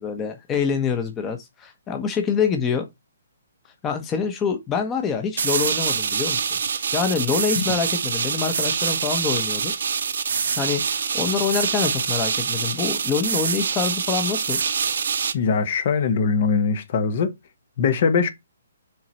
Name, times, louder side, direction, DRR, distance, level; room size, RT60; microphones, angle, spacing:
voice 1, 0.0-2.9 3.8-6.6 6.9-9.7 10.6-14.6, left 6 dB, 20° left, 1.0 m, -25 dB
sound 1, 5.4-15.3, right 6 dB, 60° right, 0.7 m, -25 dB
voice 2, 15.3-17.3 17.8-18.3, left 5 dB, 50° left, 1.1 m, -21 dB
5.8 x 4.0 x 4.3 m
figure-of-eight pair, 135°, 0 cm